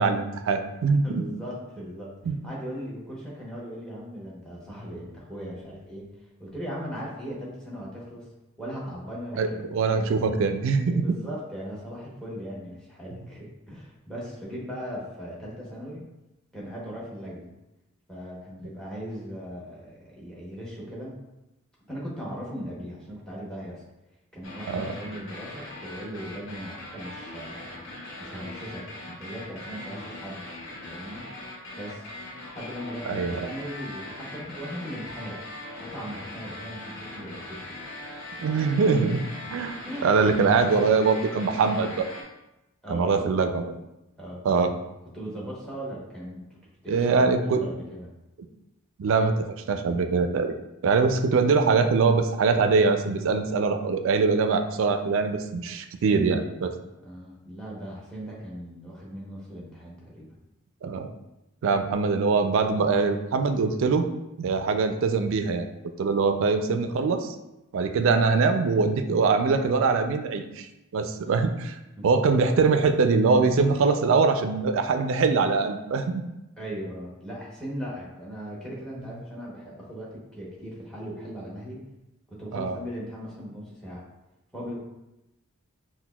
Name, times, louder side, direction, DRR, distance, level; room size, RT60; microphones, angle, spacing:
voice 1, 0.0-1.2 2.3-2.4 9.4-11.0 24.7-24.9 33.1-33.4 38.4-39.8 40.0-42.1 42.9-43.7 44.4-44.7 46.9-47.7 49.0-50.6 50.8-56.7 60.8-61.1 61.6-64.1 64.4-65.7 66.0-67.3 67.7-70.7 70.9-71.5 72.0-76.2 82.5-82.8, right 4 dB, 60° right, 7 dB, 0.3 m, -23 dB
voice 2, 1.0-2.1 2.4-8.3 8.6-9.6 9.9-10.1 10.9-16.0 16.5-17.5 18.1-21.1 21.8-23.8 24.3-27.8 28.2-30.5 30.8-31.2 31.8-32.1 32.5-35.4 35.8-37.7 38.0-38.3 39.9-40.5 42.8-43.3 44.2-44.4 45.1-48.1 57.0-60.3 71.2-71.5 72.0-72.1 76.6-81.8 82.3-84.0 84.5-84.8, equal, 5° left, -5 dB, 0.8 m, -38 dB
sound 1, 24.4-42.2, left 1 dB, 60° left, 0.8 m, -40 dB
5.8 x 2.2 x 2.2 m, 0.94 s
head